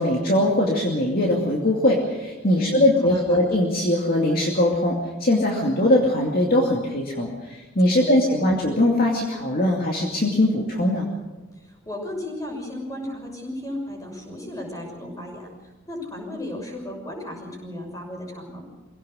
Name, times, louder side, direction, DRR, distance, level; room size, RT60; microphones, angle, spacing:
voice 1, 0.0-11.1, left 1 dB, 45° left, -1 dB, 2.5 m, -21 dB
voice 2, 2.5-3.4 8.0-8.2 11.6-18.6, left 1 dB, 15° left, 0 dB, 6.3 m, -35 dB
24.5 x 17.0 x 6.4 m, 1.2 s
head